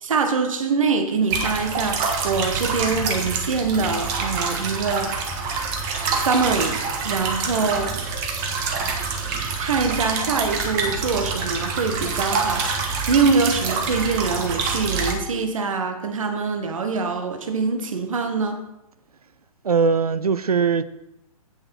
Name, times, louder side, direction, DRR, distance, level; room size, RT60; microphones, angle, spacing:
voice 1, 0.0-5.3 6.1-6.8 7.0-8.0 9.6-18.7, right 4 dB, 60° right, 1.1 m, -24 dB
sound 1, 1.3-15.1, right 4 dB, 30° right, 1.3 m, -26 dB
voice 2, 19.6-20.8, right 5 dB, 80° right, 0.5 m, -20 dB
8.4 x 6.6 x 5.4 m
figure-of-eight pair, 120°, 19 cm